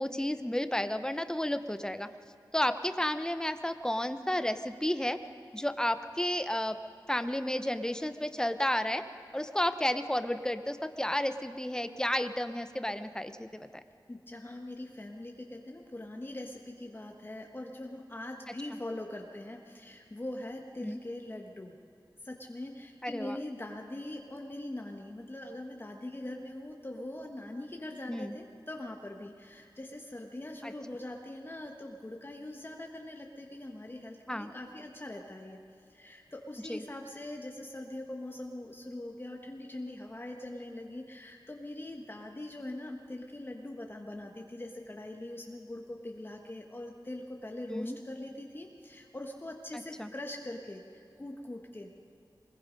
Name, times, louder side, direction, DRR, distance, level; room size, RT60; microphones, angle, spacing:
voice 1, 0.0-2.1 2.5-5.2 5.5-6.8 7.1-9.0 9.3-13.7 20.8-21.0 23.0-23.4 28.1-28.3 30.6-30.7 34.3-34.5 36.7-36.8 47.7-48.0 49.7-50.1, left 1 dB, 10° left, 10 dB, 0.9 m, -32 dB
voice 2, 14.1-21.7 22.2-35.6 35.9-51.9, left 1 dB, 25° left, 1 dB, 1.4 m, -42 dB
24.0 x 21.0 x 5.3 m, 2.5 s
wide cardioid pair, 100°, 8 cm